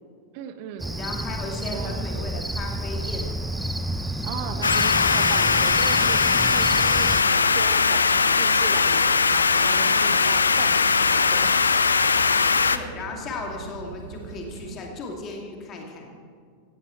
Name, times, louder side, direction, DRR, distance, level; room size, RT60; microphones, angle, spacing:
voice 1, 0.3-1.0 1.7-2.0 4.2-11.6, right 8 dB, 45° right, 9 dB, 1.3 m, -37 dB
Cricket, 0.8-7.2, right 1 dB, 5° right, 0.8 m, -30 dB
voice 2, 1.0-3.3 12.7-16.1, left 3 dB, 30° left, 1 dB, 2.5 m, -35 dB
sound 1, 4.6-12.8, left 5 dB, 75° left, 0.5 m, -20 dB
sound 2, 6.7-14.8, right 5 dB, 70° right, 1.6 m, -40 dB
17.5 x 15.0 x 4.5 m, 2.1 s
figure-of-eight pair, 90°, 0 cm